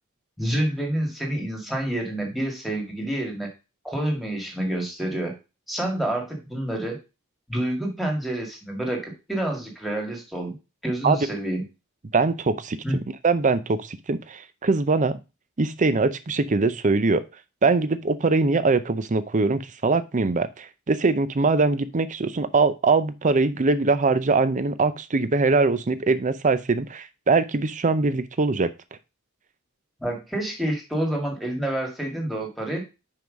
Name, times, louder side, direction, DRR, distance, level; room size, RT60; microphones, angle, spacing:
voice 1, 0.4-3.5 3.8-5.4 5.7-7.0 7.5-10.6 10.8-11.6 12.8-13.0 30.0-32.8, right 1 dB, ahead, 1 dB, 1.9 m, -28 dB
voice 2, 12.1-12.8 13.2-15.2 15.6-17.2 17.6-28.7, right 3 dB, 35° right, 13 dB, 0.6 m, -22 dB
5.9 x 4.7 x 5.1 m, 0.27 s
head